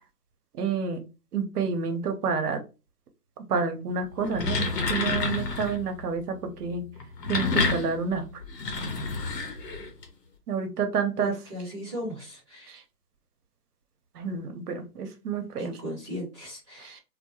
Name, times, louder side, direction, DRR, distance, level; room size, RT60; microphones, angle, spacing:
voice 1, 0.6-1.0 1.3-2.6 3.5-6.8 7.3-8.2 10.5-11.3 12.7-12.8 14.2-15.7 16.8-17.0, right 5 dB, 65° right, 6 dB, 0.8 m, -29 dB
sound 1, 4.1-5.8 7.0-10.0, left 3 dB, 75° left, 0.8 m, -29 dB
voice 2, 11.2-12.8 15.6-17.0, equal, 20° right, -5 dB, 0.8 m, -37 dB
2.2 x 2.1 x 2.8 m, 0.30 s
hypercardioid pair, 135°, 49 cm